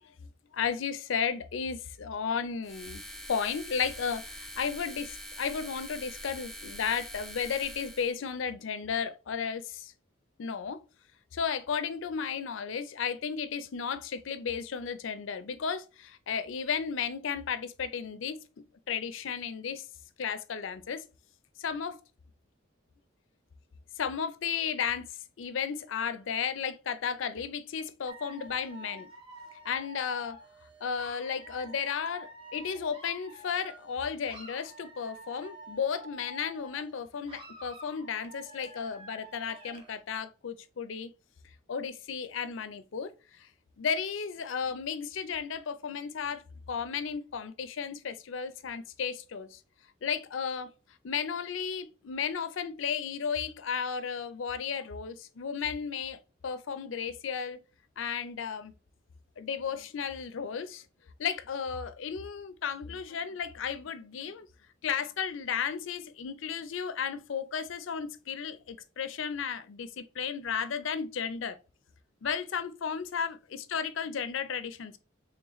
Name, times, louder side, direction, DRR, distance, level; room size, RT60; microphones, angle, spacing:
voice 1, 0.5-3.0 3.3-9.9 10.4-10.8 11.3-18.4 18.9-19.8 20.2-21.0 21.6-22.0 24.0-25.1 25.4-29.1 29.6-30.4 30.8-41.1 41.7-43.1 43.8-46.4 46.7-49.6 50.0-50.7 51.0-56.2 56.4-57.6 58.0-58.7 59.4-60.8 61.2-64.5 64.8-71.6 72.2-75.0, left 6 dB, 75° left, 0.5 m, -34 dB
sound 1, 2.6-8.1, equal, ahead, 0.3 m, -44 dB
Dog / Alarm, 28.1-34.0 34.3-37.0 37.3-40.0, equal, 25° right, 0.7 m, -48 dB
3.9 x 3.3 x 3.0 m
head